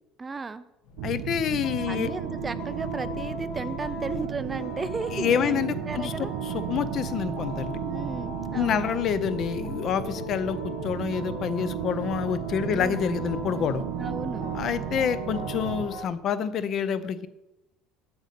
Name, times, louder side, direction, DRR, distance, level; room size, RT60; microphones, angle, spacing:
voice 1, 0.2-0.6 1.9-6.3 7.9-8.9 12.7-13.0 14.0-14.5, right 4 dB, 15° right, 13 dB, 0.3 m, -34 dB
sound 1, 0.8-16.0, left 3 dB, 85° left, 1.8 m, -39 dB
voice 2, 1.0-2.1 5.1-7.8 8.5-13.8 14.5-17.3, left 8 dB, 40° left, 14 dB, 0.5 m, -28 dB
sound 2, 1.0-15.9, right 10 dB, 80° right, 0.5 m, -34 dB
7.9 x 5.2 x 6.7 m, 0.94 s
cardioid pair, 150°, 0 cm